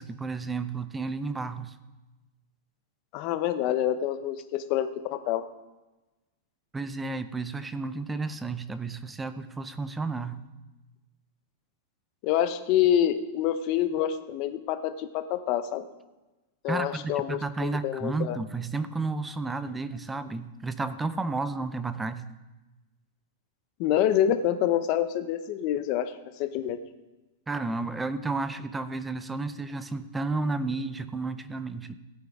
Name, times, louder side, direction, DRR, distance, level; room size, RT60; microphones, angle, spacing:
voice 1, 0.0-1.7 6.7-10.4 16.7-22.2 27.5-31.9, right 3 dB, 5° right, 12 dB, 0.4 m, -32 dB
voice 2, 3.1-5.5 12.2-15.8 16.6-18.4 23.8-26.1 26.4-26.8, left 10 dB, 35° left, 9 dB, 0.7 m, -27 dB
16.0 x 9.0 x 3.6 m, 1.1 s
supercardioid pair, 170°, 0 cm